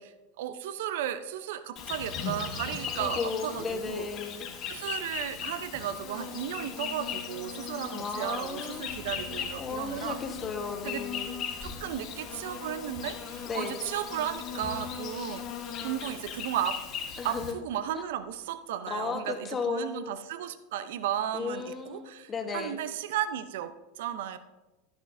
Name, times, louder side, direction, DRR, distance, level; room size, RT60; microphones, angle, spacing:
voice 1, 0.0-4.0 4.7-10.2 10.8-11.0 11.6-15.5 15.8-16.8 17.2-24.4, right 10 dB, 70° right, 12 dB, 0.6 m, -34 dB
Insect, 1.8-17.5, left 7 dB, 45° left, 1.9 m, -38 dB
voice 2, 3.0-4.5 7.9-8.8 9.6-11.4 13.5-13.8 17.2-17.6 18.9-20.0 21.3-22.8, left 5 dB, 30° left, 4 dB, 1.2 m, -34 dB
Bass guitar, 8.9-18.6, equal, 90° left, 3.4 m, -56 dB
12.0 x 10.5 x 2.6 m, 1.1 s
hypercardioid pair, 95°, 0 cm